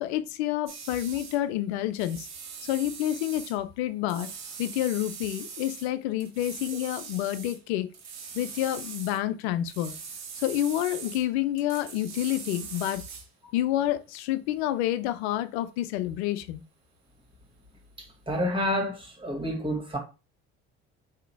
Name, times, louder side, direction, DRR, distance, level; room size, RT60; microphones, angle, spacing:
voice 1, 0.0-2.3 2.7-4.3 4.6-7.9 8.3-9.9 10.4-13.0 13.5-16.6, left 13 dB, 85° left, 0.6 m, -28 dB
sound 1, 0.7-1.4 2.0-3.6 4.1-5.9 6.2-7.6 7.9-9.2 9.7-11.3 11.6-13.3, right 6 dB, 55° right, 1.3 m, -41 dB
voice 2, 18.0-20.0, equal, 15° right, 2.2 m, -29 dB
3.8 x 2.9 x 4.5 m
hypercardioid pair, 70°, 32 cm